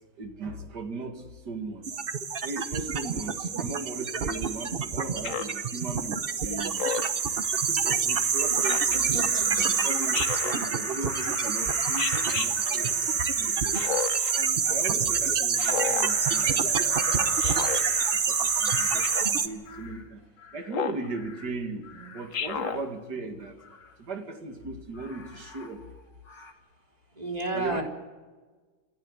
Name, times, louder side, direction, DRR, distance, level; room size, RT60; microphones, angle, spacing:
voice 1, 0.2-1.9 2.4-6.9 7.4-9.2 9.8-13.8 14.3-16.7 17.1-17.7 18.1-19.1 19.4-20.2 20.5-21.9 22.1-23.6 24.0-25.9 27.5-27.8, right 3 dB, 60° right, 6 dB, 2.7 m, -37 dB
sound 1, 1.8-19.5, right 6 dB, 40° right, 0.8 m, -27 dB
voice 2, 2.8-3.6 4.2-4.3 8.9-9.7 12.3-14.0 14.5-14.6 21.9-22.0 22.9-23.0 24.4-24.6 25.0-25.1 27.1-27.8, right 2 dB, 20° right, 1 dB, 3.5 m, -37 dB
Speech synthesizer, 5.2-5.6 6.8-7.2 8.6-9.0 10.1-10.6 12.0-12.5 13.7-14.3 15.6-16.1 17.4-17.8 19.0-19.4 20.7-21.1 22.3-22.8, left 6 dB, 50° left, 1.2 m, -31 dB
Crow, 6.7-6.8 7.2-7.7 8.1-14.1 15.7-20.0 20.4-20.8 21.1-21.5 21.8-22.9 23.6-23.9 24.9-26.0 26.3-26.5, left 4 dB, 65° left, 2.8 m, -40 dB
28.0 x 12.0 x 9.9 m, 1.3 s
omnidirectional pair, 2.1 m